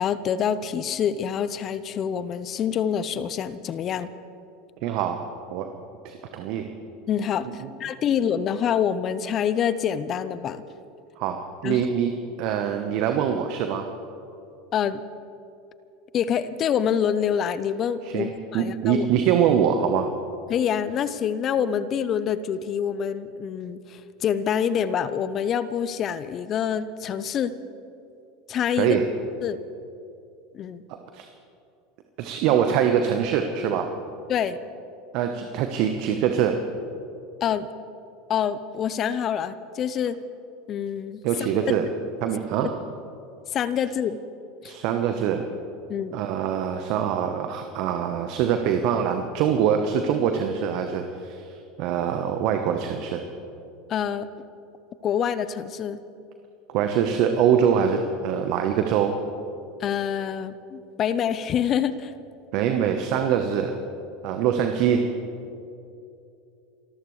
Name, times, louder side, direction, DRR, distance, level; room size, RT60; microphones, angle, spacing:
voice 1, 0.0-4.1 7.1-10.6 11.6-11.8 14.7-15.0 16.1-19.1 20.5-27.5 28.5-29.0 29.4-29.6 30.5-30.8 34.3-34.6 37.4-37.7 38.3-40.2 40.7-41.2 41.7-41.8 43.5-44.2 44.6-44.7 45.9-46.2 53.9-54.3 55.0-56.0 59.8-62.1, left 8 dB, 40° left, 15 dB, 0.7 m, -26 dB
voice 2, 4.8-5.7 6.0-6.7 7.6-7.7 11.2-12.1 12.4-13.9 18.0-18.3 18.5-20.1 28.8-29.0 31.1-31.3 32.2-33.9 35.1-36.6 41.2-41.8 42.2-42.7 44.6-45.4 46.1-53.2 56.7-59.2 62.5-63.8 64.2-65.0, right 8 dB, 55° right, 6 dB, 1.1 m, -24 dB
29.0 x 14.0 x 3.3 m, 2.7 s
hypercardioid pair, 85°, 0 cm